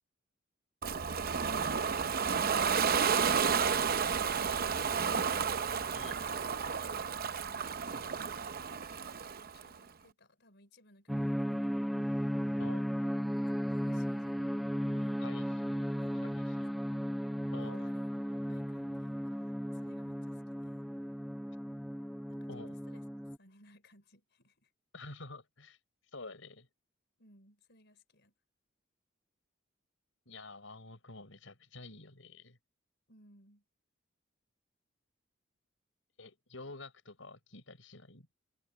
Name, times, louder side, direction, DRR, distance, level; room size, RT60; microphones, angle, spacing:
Ocean, 0.8-9.7, right 6 dB, 50° right, 0.7 m, -31 dB
voice 1, 7.0-8.2 9.5-12.0 13.3-14.3 14.9-15.2 15.8-16.8 17.6-20.8 22.3-23.0 23.4-24.7 27.2-28.3 33.1-33.6, left 1 dB, 60° left, 4.9 m, -64 dB
sound 1, 11.1-23.4, equal, ahead, 0.6 m, -35 dB
voice 2, 12.6-12.9 15.2-15.5 16.2-16.7 17.5-17.9 22.5-22.7 24.9-25.8 26.1-26.7 30.3-32.6 36.2-38.3, left 2 dB, 75° left, 6.1 m, -49 dB
head